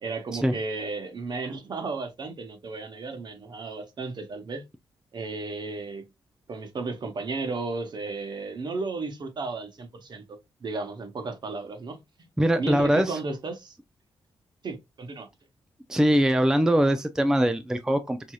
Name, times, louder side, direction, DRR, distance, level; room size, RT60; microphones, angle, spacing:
voice 1, 0.0-4.6 5.1-6.0 6.5-12.0 12.6-13.8 14.6-15.3, right 3 dB, 50° right, 1.0 m, -34 dB
voice 2, 12.4-13.2 15.9-18.3, equal, 5° right, 0.4 m, -22 dB
4.7 x 2.7 x 2.3 m
cardioid pair, 85°, 9 cm